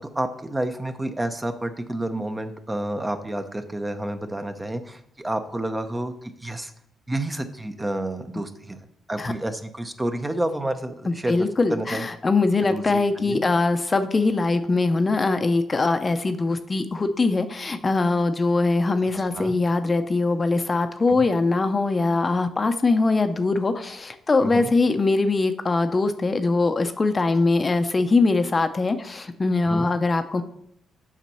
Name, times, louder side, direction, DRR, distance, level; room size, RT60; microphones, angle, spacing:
voice 1, 0.1-6.7 7.1-8.8 9.1-12.0 12.7-13.5 19.2-19.6 21.1-21.3 24.4-24.7 29.6-29.9, right 1 dB, 15° right, 8 dB, 0.8 m, -30 dB
voice 2, 11.1-30.4, left 3 dB, 30° left, 8 dB, 0.7 m, -22 dB
7.4 x 5.8 x 5.5 m, 0.73 s
cardioid pair, 90°, 0 cm